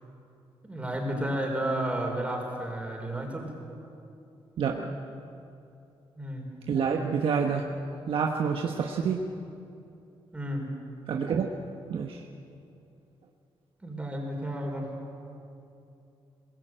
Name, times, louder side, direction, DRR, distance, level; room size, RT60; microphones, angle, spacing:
voice 1, 0.6-3.5 6.2-6.5 10.3-10.7 13.8-14.9, right 1 dB, 15° right, 1 dB, 4.3 m, -32 dB
voice 2, 4.6-5.0 6.7-7.7 8.1-9.3 11.1-11.5 11.9-12.2, right 6 dB, 70° right, 2 dB, 1.3 m, -28 dB
22.0 x 21.5 x 9.0 m, 2.7 s
wide cardioid pair, 135°, 10 cm